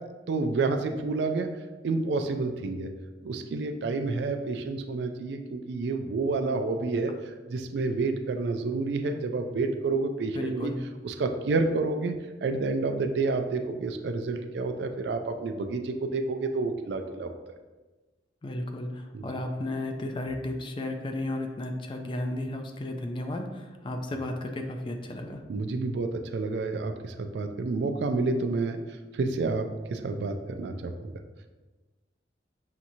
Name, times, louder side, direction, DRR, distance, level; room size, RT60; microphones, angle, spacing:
voice 1, 0.3-1.5 1.8-2.9 3.2-7.1 7.5-10.7 11.0-12.1 12.4-17.3 19.1-19.2 25.5-28.8 29.1-31.1, right 3 dB, 65° right, 6 dB, 0.4 m, -29 dB
voice 2, 10.3-10.8 18.4-25.4, left 1 dB, 30° left, 4 dB, 0.3 m, -33 dB
5.9 x 2.8 x 2.6 m, 1.2 s
head